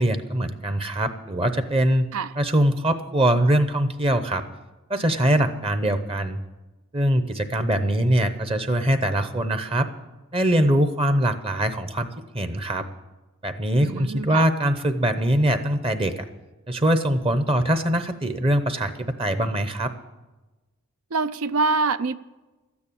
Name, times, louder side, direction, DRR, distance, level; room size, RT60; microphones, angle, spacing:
voice 1, 0.0-2.1 2.4-4.4 4.9-6.4 6.9-9.9 10.3-12.1 12.3-12.8 13.4-16.1 16.7-19.9, right 1 dB, 25° right, 0.8 m, -22 dB
voice 2, 13.8-14.5 21.1-22.1, right 4 dB, 65° right, 0.5 m, -25 dB
13.0 x 9.6 x 8.6 m
head